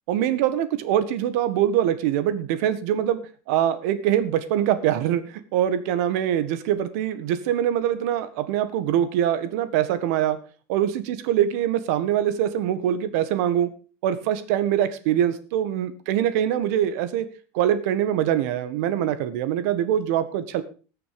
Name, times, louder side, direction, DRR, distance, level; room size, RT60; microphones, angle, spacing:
voice 1, 0.1-3.2 3.5-10.4 10.7-13.7 14.0-17.3 17.5-20.6, right 10 dB, 70° right, 12 dB, 1.6 m, -23 dB
19.0 x 6.8 x 5.2 m, 0.37 s
cardioid pair, 155°, 9 cm